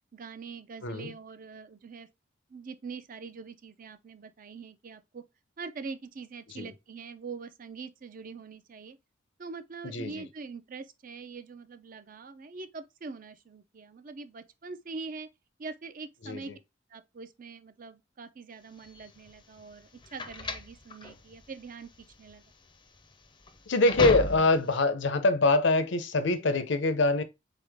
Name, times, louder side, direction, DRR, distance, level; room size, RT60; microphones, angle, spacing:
voice 1, 0.1-2.1 2.5-5.2 5.6-9.0 9.4-15.3 15.6-16.5 16.9-22.4, right 4 dB, 45° right, 0.5 m, -43 dB
voice 2, 0.8-1.1 6.5-6.7 9.8-10.2 16.2-16.5 23.7-27.2, left 2 dB, 65° left, 0.6 m, -24 dB
sound 1, 18.8-24.8, left 2 dB, 25° left, 0.5 m, -35 dB
3.9 x 3.5 x 3.4 m
head